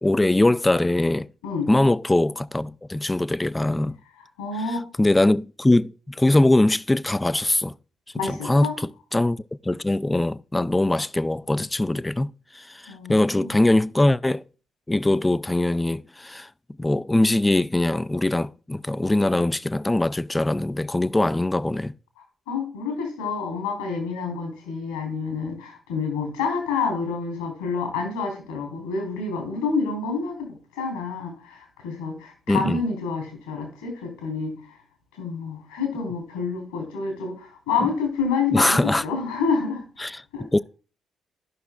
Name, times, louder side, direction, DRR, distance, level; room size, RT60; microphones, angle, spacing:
voice 1, 0.0-1.3 1.7-4.0 5.0-7.7 8.2-9.4 9.6-14.4 14.9-16.5 16.8-21.9 32.5-32.8 37.8-37.9 38.5-39.0 40.0-40.2 40.5-40.6, left 1 dB, 15° left, 0.3 m, -22 dB
voice 2, 4.4-4.8 8.1-8.8 12.9-13.5 22.5-34.5 35.2-39.8 40.3-40.4, left 5 dB, 85° left, 3.7 m, -28 dB
15.0 x 5.9 x 2.4 m
figure-of-eight pair, 45°, 0 cm